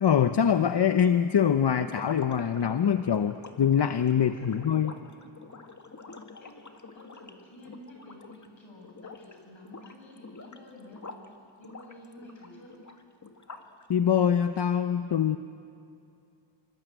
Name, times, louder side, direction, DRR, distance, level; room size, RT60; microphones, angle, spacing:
voice 1, 0.0-4.9 13.9-15.4, left 8 dB, 60° left, 9 dB, 0.8 m, -24 dB
sound 1, 1.9-8.5 8.8-9.3 9.6-11.3 11.6-13.8, left 3 dB, 40° left, 1.9 m, -46 dB
voice 2, 4.1-5.3 6.4-6.5 6.9-11.1 11.6-12.7, left 1 dB, 75° left, 0 dB, 7.8 m, -50 dB
25.5 x 25.0 x 9.1 m, 2.6 s
wide cardioid pair, 75°, 46 cm